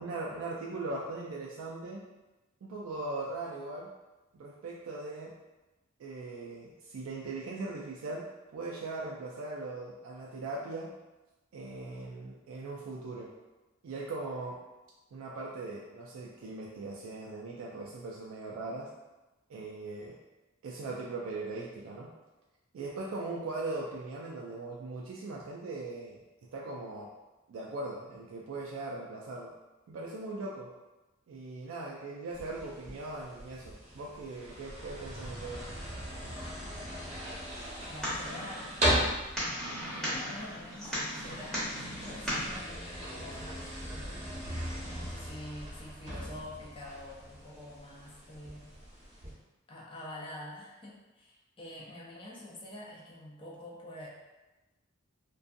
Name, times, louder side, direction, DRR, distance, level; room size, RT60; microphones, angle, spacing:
voice 1, 0.0-2.0 2.6-3.9 4.3-5.3 6.0-10.9 11.5-13.3 13.8-14.6 15.1-18.9 19.5-20.2 20.6-22.1 22.7-26.2 26.5-27.1 27.5-29.5 29.9-30.7 31.3-35.8, right 2 dB, 80° right, -3 dB, 0.3 m, -39 dB
sound 1, 32.3-49.3, equal, 35° right, 0.8 m, -38 dB
sound 2, 37.5-42.6, equal, ahead, 0.8 m, -37 dB
voice 2, 37.8-39.3 39.9-44.3 44.9-48.7 49.7-54.1, left 1 dB, 25° left, -5 dB, 0.4 m, -46 dB
2.5 x 2.3 x 2.5 m, 1.1 s
head